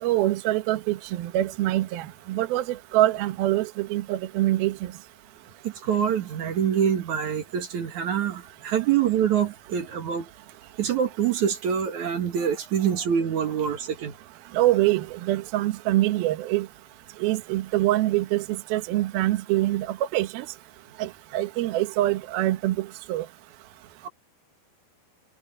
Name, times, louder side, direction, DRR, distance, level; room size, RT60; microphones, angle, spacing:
voice 1, 0.0-4.9 14.5-16.7 17.2-20.5 21.0-23.3, right 15 dB, 75° right, 2.8 m, -25 dB
voice 2, 5.6-10.3 10.8-14.1 24.0-24.1, right 8 dB, 55° right, 2.8 m, -25 dB
omnidirectional pair, 4.7 m